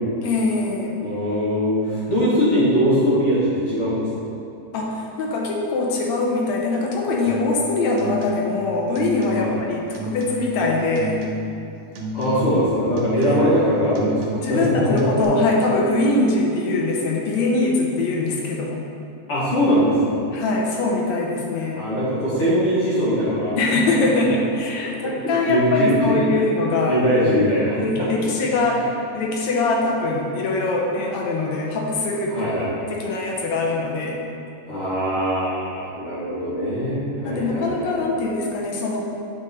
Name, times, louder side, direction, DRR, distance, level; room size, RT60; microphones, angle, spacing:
voice 1, 0.2-1.0 2.2-2.3 4.7-11.3 13.2-13.4 14.3-18.8 20.3-21.8 23.6-27.0 27.8-28.9 29.1-32.5 32.9-34.2 37.2-39.0, left 2 dB, 75° left, -1 dB, 2.0 m, -22 dB
voice 2, 1.0-4.2 9.4-9.5 12.1-14.6 14.9-15.0 19.3-20.2 21.8-23.6 25.5-25.9 26.3-26.4 26.9-27.8 32.3-32.7 34.7-38.0, equal, 55° left, -10 dB, 2.0 m, -21 dB
sound 1, 7.3-7.6 7.9-8.6 8.9-9.6 9.9-10.6 11.0-11.7 11.9-12.6 13.0-13.6 13.9-14.6 15.0-15.2, left 1 dB, 85° right, 2.3 m, -30 dB
7.5 x 5.2 x 4.0 m, 2.8 s
omnidirectional pair, 3.3 m